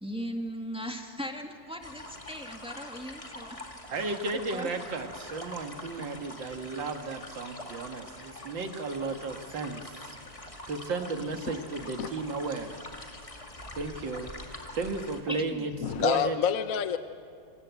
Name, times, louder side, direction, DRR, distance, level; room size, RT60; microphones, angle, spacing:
voice 1, 0.0-3.5 4.5-4.7 15.3-15.7, equal, 5° right, 3 dB, 2.0 m, -38 dB
sound 1, 1.8-15.2, left 1 dB, 20° left, 2.0 m, -44 dB
voice 2, 3.9-10.2 10.7-12.8 13.8-16.4, right 3 dB, 90° right, 6 dB, 2.6 m, -34 dB
voice 3, 15.8-17.0, left 8 dB, 55° left, 10 dB, 1.2 m, -27 dB
26.5 x 26.5 x 8.3 m, 2.2 s
omnidirectional pair, 2.0 m